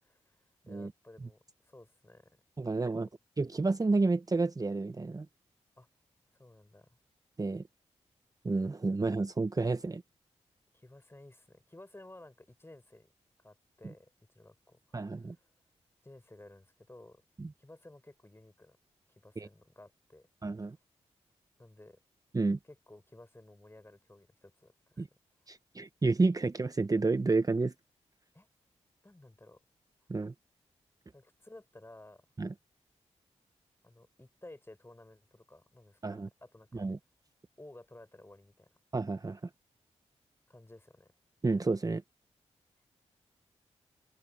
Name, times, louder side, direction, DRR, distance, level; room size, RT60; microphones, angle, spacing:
voice 1, 0.0-2.4 2.9-3.1 5.8-5.9 6.4-7.0 10.7-13.1 13.4-15.4 16.0-17.2 17.6-18.8 19.1-20.3 21.6-22.0 22.6-25.0 28.3-28.5 29.0-29.6 31.1-32.2 33.8-36.9 37.6-38.7 40.5-41.1, left 1 dB, 20° left, 6.2 m, -55 dB
voice 2, 2.6-3.1 3.4-5.3 7.4-7.6 8.4-10.0 14.9-15.3 17.4-17.5 19.4-19.5 20.4-20.8 22.3-22.6 25.0-25.1 25.5-27.7 30.1-30.3 32.4-32.5 36.0-36.3 36.7-37.0 38.9-39.4 41.4-42.0, right 3 dB, 30° right, 0.9 m, -30 dB
cardioid pair, 45°, 12 cm